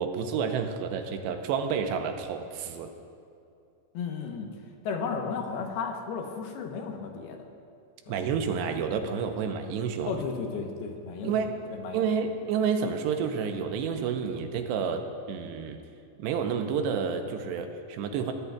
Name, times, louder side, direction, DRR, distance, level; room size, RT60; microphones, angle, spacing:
voice 1, 0.0-2.9 8.1-10.1 11.2-11.6 11.9-15.8 16.2-18.3, right 6 dB, 85° right, 5 dB, 2.9 m, -30 dB
voice 2, 3.9-4.5 4.8-7.4 8.1-8.2 10.1-12.1, left 5 dB, 75° left, 2 dB, 2.8 m, -34 dB
22.0 x 16.0 x 2.4 m, 2.5 s
omnidirectional pair, 5.0 m